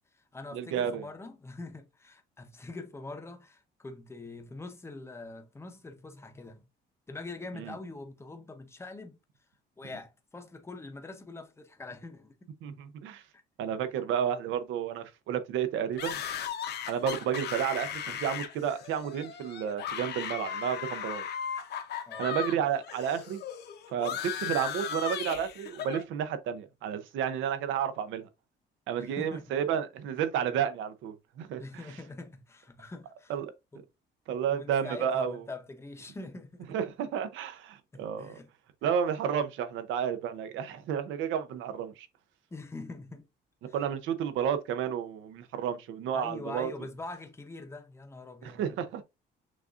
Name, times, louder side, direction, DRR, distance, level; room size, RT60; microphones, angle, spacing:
voice 1, 0.0-6.7 7.1-9.2 9.8-12.5 14.0-14.1 22.1-22.4 29.0-29.5 31.6-33.3 33.7-33.8 34.4-36.8 37.9-38.5 42.5-43.3 43.7-43.8 46.1-48.9, left 2 dB, 15° left, 0.7 m, -44 dB
voice 2, 0.5-1.0 7.6-7.7 12.6-13.2 13.6-16.2 16.9-21.3 22.2-23.4 23.9-28.3 28.9-31.6 33.3-33.4 34.3-35.4 36.7-38.4 38.8-42.1 43.7-46.7 48.4-49.0, right 8 dB, 75° right, 0.7 m, -31 dB
sound 1, 16.0-22.6 22.8-26.0, left 8 dB, 55° left, 0.7 m, -37 dB
6.2 x 2.5 x 2.5 m
cardioid pair, 125°, 20 cm